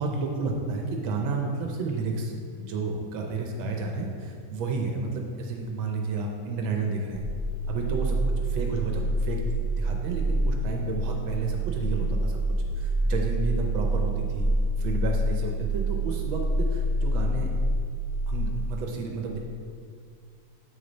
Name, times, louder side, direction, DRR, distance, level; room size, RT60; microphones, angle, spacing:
voice 1, 0.0-2.3 2.6-7.2 7.7-9.4 9.7-12.4 12.8-14.5 14.8-17.5 18.3-19.4, right 3 dB, 85° right, 1 dB, 1.5 m, -31 dB
sound 1, 7.1-18.3, right 1 dB, 10° right, 1.1 m, -27 dB
8.3 x 6.5 x 4.0 m, 2.2 s
omnidirectional pair, 2.1 m